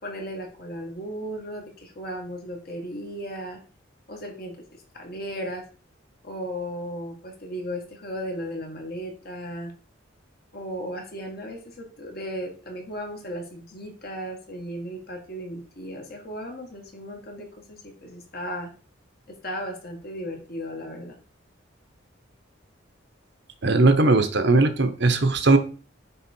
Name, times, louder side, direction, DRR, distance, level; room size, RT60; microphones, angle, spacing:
voice 1, 0.0-3.6 4.1-4.5 4.9-5.6 6.2-9.7 10.5-18.7 19.4-21.2, equal, 50° left, 2 dB, 1.9 m, -35 dB
voice 2, 23.6-25.6, right 2 dB, 60° right, 8 dB, 0.9 m, -19 dB
9.1 x 3.7 x 4.5 m, 0.39 s
head